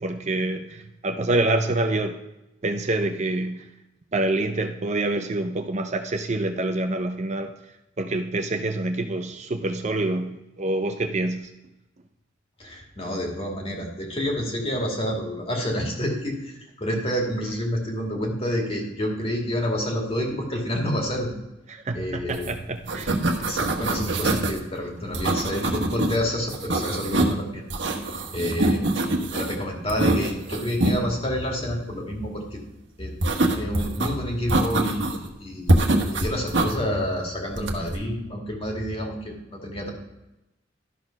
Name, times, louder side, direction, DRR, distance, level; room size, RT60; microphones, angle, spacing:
voice 1, 0.0-2.2 2.6-3.6 4.1-7.5 8.0-11.5 21.7-23.2, right 2 dB, 40° right, 6 dB, 0.6 m, -26 dB
voice 2, 12.6-21.3 21.9-22.5 23.4-27.6 28.3-28.9 29.3-32.6 33.0-33.1 33.5-35.8 36.1-39.9, equal, 30° left, 0 dB, 2.1 m, -28 dB
sound 1, 22.3-22.5 22.8-24.6 25.1-26.2 26.5-27.4 27.7-29.6 29.9-31.0 33.2-34.1 34.5-35.3 35.7-36.7 37.5-38.0, right 2 dB, 75° right, 1.2 m, -24 dB
12.5 x 4.4 x 5.8 m, 0.95 s
head